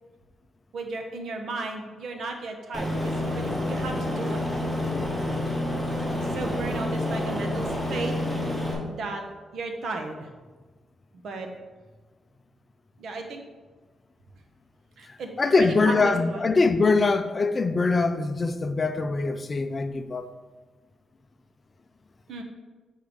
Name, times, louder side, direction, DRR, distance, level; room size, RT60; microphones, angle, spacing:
voice 1, 0.7-4.4 6.3-8.1 8.9-9.2 9.5-10.3 11.2-11.5 13.0-13.4 15.0-16.4 22.3-22.4, right 3 dB, 75° right, 1.1 m, -34 dB
Aircraft, 2.7-8.7, left 1 dB, ahead, 2.3 m, -28 dB
voice 2, 15.4-20.3, left 3 dB, 30° left, 0.4 m, -23 dB
6.4 x 4.6 x 5.3 m
cardioid pair, 130°, 0 cm